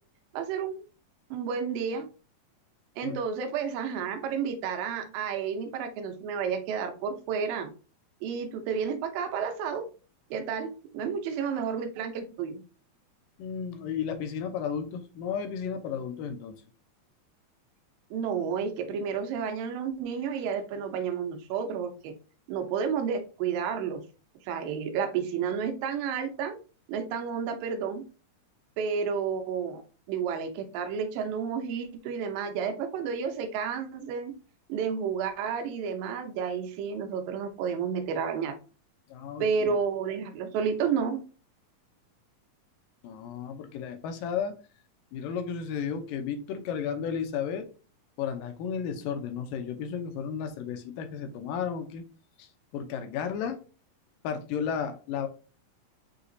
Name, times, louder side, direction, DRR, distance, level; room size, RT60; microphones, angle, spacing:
voice 1, 0.3-0.8 1.3-2.1 3.0-7.7 8.2-9.9 10.3-12.6 18.1-22.1 22.5-24.0 24.4-26.6 26.9-28.0 28.8-29.8 30.1-34.3 34.7-38.6 39.4-41.2, right 6 dB, 80° right, 5 dB, 2.4 m, -31 dB
voice 2, 13.4-16.6 39.1-39.8 43.0-44.6 45.1-47.7 48.2-52.1 52.4-53.6 54.2-55.3, left 7 dB, 80° left, 6 dB, 2.3 m, -33 dB
6.5 x 2.9 x 2.6 m, 0.35 s
omnidirectional pair, 4.0 m